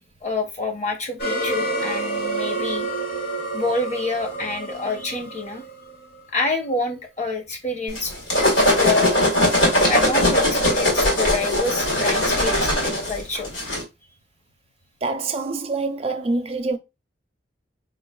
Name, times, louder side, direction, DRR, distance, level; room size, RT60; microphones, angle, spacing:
voice 1, 0.2-2.9 3.5-5.6 6.3-8.1 8.7-9.2 9.8-13.5, left 3 dB, 40° left, 0.8 m, -27 dB
sound 1, 1.2-6.2, right 2 dB, 55° left, 2.1 m, -28 dB
sound 2, 7.9-13.8, left 1 dB, 80° left, 2.3 m, -20 dB
voice 2, 15.0-16.8, right 3 dB, 30° right, 0.4 m, -25 dB
4.7 x 3.8 x 2.2 m
head